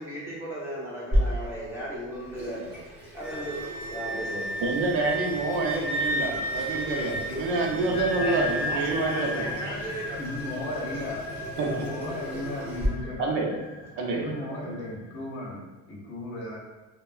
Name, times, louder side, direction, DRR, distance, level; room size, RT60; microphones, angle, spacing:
voice 1, 0.0-2.9 3.1-4.6 7.1-11.0 11.3-12.4 13.0-13.2, right 1 dB, 5° right, -8 dB, 0.9 m, -37 dB
Water tap faucet / Sink (filling or washing), 1.1-12.9, equal, 30° right, 1.2 m, -35 dB
Wind instrument woodwind instrument, 3.2-9.6, right 2 dB, 55° right, 1.4 m, -33 dB
voice 2, 4.6-9.6 11.6-11.9 13.2-13.5 14.0-14.3 14.6-14.7, right 3 dB, 70° right, -1 dB, 0.7 m, -27 dB
sound 1, 7.7-15.2, left 3 dB, 15° left, 0.4 m, -37 dB
voice 3, 10.1-11.3 11.5-13.4 14.1-16.6, left 1 dB, 35° left, -4 dB, 0.8 m, -36 dB
3.3 x 2.1 x 2.3 m, 1.2 s
cardioid pair, 135°, 33 cm